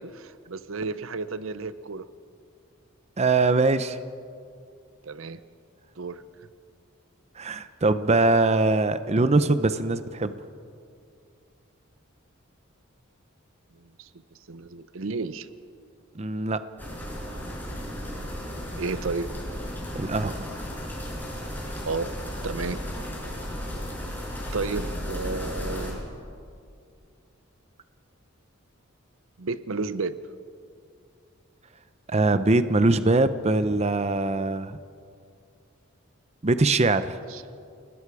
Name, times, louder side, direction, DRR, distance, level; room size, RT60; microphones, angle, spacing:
voice 1, 0.0-2.1 5.0-5.4 6.0-6.2 13.8-14.1 14.5-15.5 18.8-19.3 21.8-22.1 22.4-22.8 24.5-26.0 29.4-30.2 37.3-37.4, right 4 dB, 65° right, 14 dB, 0.7 m, -32 dB
voice 2, 3.2-4.0 7.4-10.3 16.1-16.6 19.9-20.5 32.1-34.8 36.4-37.2, right 2 dB, 30° right, 12 dB, 0.6 m, -22 dB
sound 1, 16.8-25.9, equal, 10° left, 5.1 m, -34 dB
30.0 x 20.0 x 4.8 m, 2.4 s
head